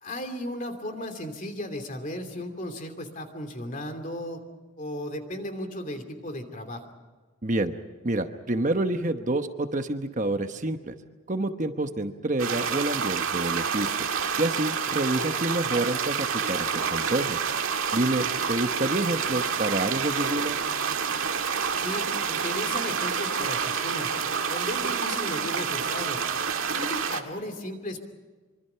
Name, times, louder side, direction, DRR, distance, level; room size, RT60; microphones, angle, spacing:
voice 1, 0.0-4.4 4.8-6.8 15.1-15.3 18.1-18.3 21.8-24.1 24.5-26.2 26.7-28.1, left 1 dB, 40° left, 7 dB, 2.8 m, -35 dB
voice 2, 7.4-7.7 8.0-10.9 11.3-13.9 14.4-17.4 17.9-20.6, right 2 dB, 35° right, 7 dB, 1.1 m, -28 dB
sound 1, 12.4-27.2, right 6 dB, 80° right, 1.8 m, -28 dB
sound 2, 19.2-23.6, right 5 dB, 60° right, 1.2 m, -44 dB
25.5 x 24.5 x 5.8 m, 1.3 s
head